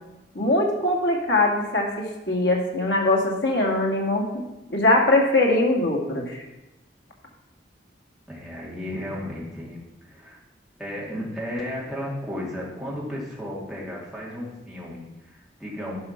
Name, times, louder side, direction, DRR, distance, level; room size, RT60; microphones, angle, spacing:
voice 1, 0.3-4.3 4.7-6.4, left 2 dB, 75° left, 0 dB, 2.3 m, -21 dB
voice 2, 8.3-10.4 10.8-16.0, left 1 dB, ahead, -6 dB, 2.6 m, -34 dB
11.0 x 5.5 x 5.9 m, 1.0 s
head